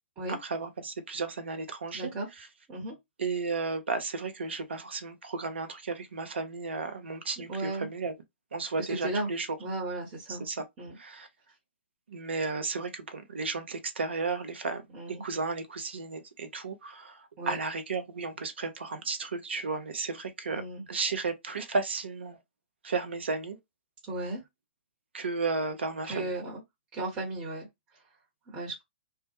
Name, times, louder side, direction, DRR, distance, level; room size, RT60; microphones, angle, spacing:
voice 1, 0.3-2.1 3.2-8.1 8.5-9.5 10.3-10.6 11.0-11.3 12.1-14.8 15.2-20.6 20.9-22.4 22.8-23.6 25.1-26.3, right 4 dB, 70° right, 0.7 m, -33 dB
voice 2, 1.9-2.3 2.7-3.0 7.5-7.9 8.9-9.3 9.6-10.5 10.8-11.0 14.9-15.2 17.4-17.6 20.5-20.8 24.1-24.4 26.1-26.6 26.9-27.7 27.9-28.0 28.5-28.8, right 2 dB, 20° right, 1.0 m, -35 dB
2.2 x 2.1 x 2.8 m
figure-of-eight pair, 125°, 6 cm